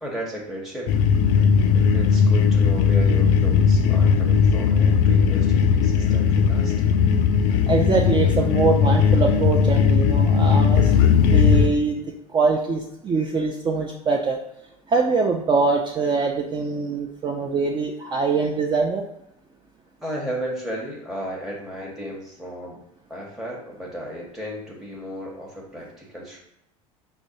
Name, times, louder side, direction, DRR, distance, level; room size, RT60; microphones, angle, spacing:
voice 1, 0.0-0.9 1.7-6.7 20.0-22.8 23.1-26.4, equal, ahead, -4 dB, 0.9 m, -34 dB
sound 1, 0.9-11.7, left 6 dB, 55° left, 0.4 m, -18 dB
voice 2, 7.7-10.9 11.3-12.0 12.3-14.4 14.9-19.0, right 4 dB, 25° right, 0 dB, 0.5 m, -23 dB
5.0 x 2.2 x 2.7 m, 0.81 s
hypercardioid pair, 75°, 18 cm